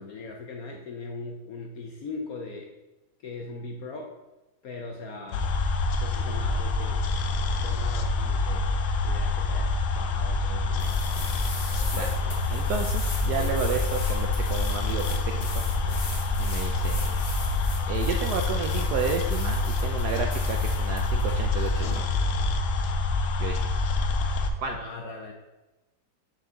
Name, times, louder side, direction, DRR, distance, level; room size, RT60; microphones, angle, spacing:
voice 1, 0.0-2.7 3.2-4.1 4.6-5.5 6.0-7.0 7.6-10.9 24.6-25.3, left 3 dB, 65° left, 1 dB, 0.9 m, -39 dB
sound 1, 5.3-24.5, left 3 dB, 85° left, 1.5 m, -26 dB
sound 2, 10.8-22.0, left 1 dB, 40° left, 1.2 m, -38 dB
voice 2, 12.5-15.6 16.4-17.2 17.9-22.0 23.4-23.7 24.6-24.8, right 6 dB, 75° right, 3 dB, 0.9 m, -32 dB
6.6 x 4.7 x 3.8 m, 1.1 s
omnidirectional pair, 2.2 m